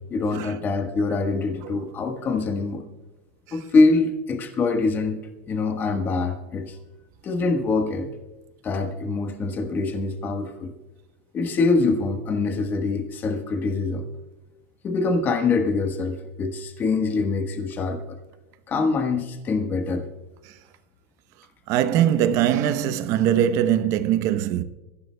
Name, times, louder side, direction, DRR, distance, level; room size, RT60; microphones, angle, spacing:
voice 1, 0.0-2.9 3.5-5.2 5.5-6.8 7.2-8.1 8.6-10.7 11.3-14.1 14.8-18.2 18.7-20.1, left 3 dB, 30° left, 1.4 m, -24 dB
voice 2, 21.7-24.6, right 10 dB, 50° right, 0.8 m, -21 dB
23.0 x 15.0 x 2.3 m
supercardioid pair, 130°, 7 cm